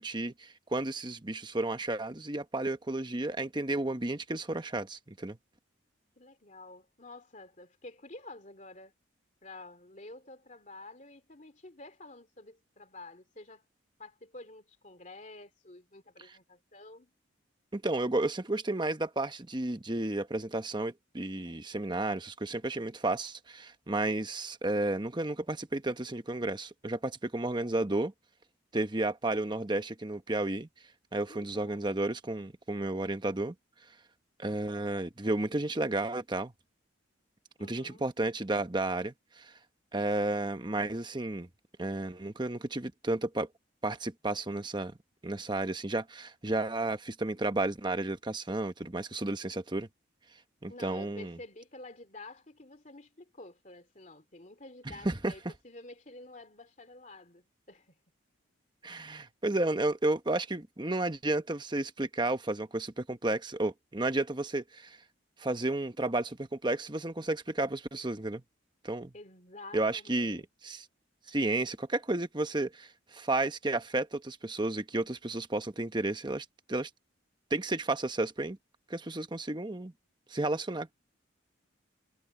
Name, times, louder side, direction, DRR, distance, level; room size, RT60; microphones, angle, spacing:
voice 1, 0.0-5.4 16.2-16.3 17.7-28.1 28.7-30.7 31.1-33.5 34.4-36.5 37.6-39.5 39.9-41.5 41.8-43.5 43.8-44.9 45.2-49.9 50.6-51.4 54.9-55.3 58.8-65.0 65.4-68.4 68.8-69.1 69.7-70.9 71.3-76.9 77.5-78.6 78.9-79.9 80.3-80.9, right 2 dB, 25° right, 1.0 m, -32 dB
voice 2, 6.2-8.9 9.4-13.6 14.0-17.1 31.3-31.9 37.6-38.1 50.7-57.9 69.1-70.5, left 2 dB, 40° left, 2.6 m, -50 dB
head